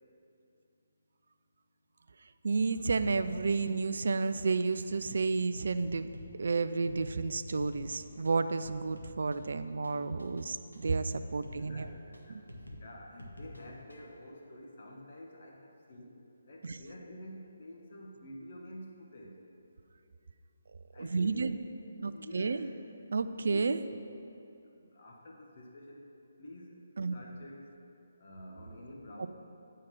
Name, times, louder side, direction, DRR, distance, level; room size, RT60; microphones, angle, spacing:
voice 1, 2.4-6.1 6.4-11.9 12.3-12.4 16.6-16.8 21.0-21.6 22.0-22.7 23.1-23.8 27.0-27.1 29.2-29.3, right 4 dB, 55° right, 12 dB, 0.3 m, -31 dB
sound 1, 3.0-14.2, left 1 dB, 85° left, 1.1 m, -51 dB
voice 2, 11.2-16.1 16.5-19.4 20.9-21.5 21.8-22.6 23.4-23.7 24.7-26.1 26.4-26.8 27.1-27.7 28.2-29.3, left 1 dB, 45° left, 0 dB, 0.8 m, -49 dB
8.9 x 3.7 x 5.9 m, 2.6 s
figure-of-eight pair, 145°, 0 cm